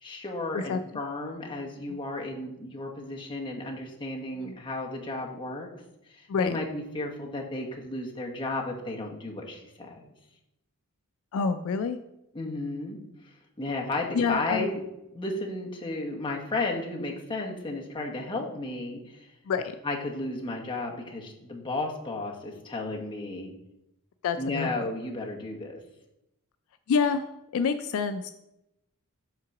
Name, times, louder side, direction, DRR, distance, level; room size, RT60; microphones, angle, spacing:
voice 1, 0.0-5.7 6.1-10.1 12.3-13.0 13.6-14.8 15.1-19.3 19.8-23.5 24.4-25.8, left 2 dB, 20° left, -1 dB, 1.1 m, -33 dB
voice 2, 11.3-12.0 12.5-12.6 14.1-14.7 19.5-19.8 24.2-24.9 26.9-28.3, left 5 dB, 65° left, 10 dB, 0.3 m, -28 dB
5.7 x 3.8 x 5.9 m, 0.87 s
head